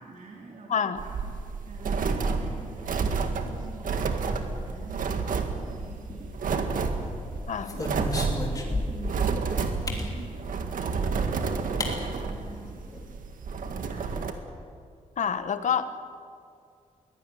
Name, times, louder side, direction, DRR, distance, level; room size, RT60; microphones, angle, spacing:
voice 1, 0.0-1.3 1.7-8.1 8.5-13.2 13.6-14.4, right 3 dB, 65° right, -2 dB, 3.1 m, -46 dB
voice 2, 0.7-1.0 7.5-7.8 15.2-16.1, left 7 dB, 65° left, 11 dB, 1.2 m, -28 dB
sound 1, 1.0-14.3, right 4 dB, 90° right, 1.9 m, -30 dB
sound 2, 6.0-6.7 7.2-9.2 9.9-10.1 11.2-11.3 11.8-11.9 12.3-12.4 12.6-13.1, left 2 dB, 25° left, 3.1 m, -33 dB
22.0 x 17.0 x 10.0 m, 2.3 s
wide cardioid pair, 175°, 14 cm